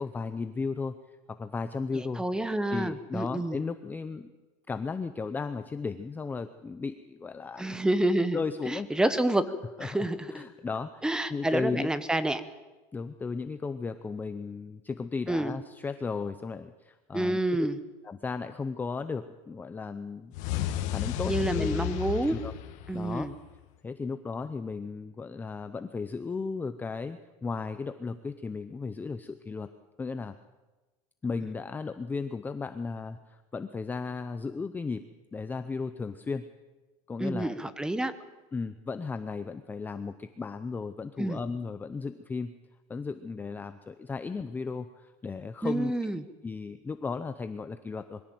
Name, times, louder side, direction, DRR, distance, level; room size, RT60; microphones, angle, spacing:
voice 1, 0.0-2.2 2.7-4.3 4.7-7.9 8.3-8.9 9.8-11.0 11.3-11.9 12.9-17.4 18.0-20.3 20.9-21.9 22.2-22.5 22.9-23.3 23.8-29.7 30.0-30.3 31.2-35.0 35.3-36.5 37.1-37.5 38.5-42.5 42.9-46.1 46.4-48.2, left 4 dB, 10° left, 10 dB, 0.6 m, -35 dB
voice 2, 1.9-3.6 7.6-8.4 8.7-9.4 9.8-10.4 11.0-12.4 15.3-15.5 17.1-17.8 21.2-22.4 22.9-23.3 37.2-38.1 41.2-41.4 45.6-46.2, right 1 dB, 5° right, 13 dB, 1.0 m, -28 dB
sound 1, 20.3-23.5, left 13 dB, 55° left, 1.8 m, -33 dB
22.0 x 15.5 x 7.7 m, 1.2 s
cardioid pair, 155°, 15 cm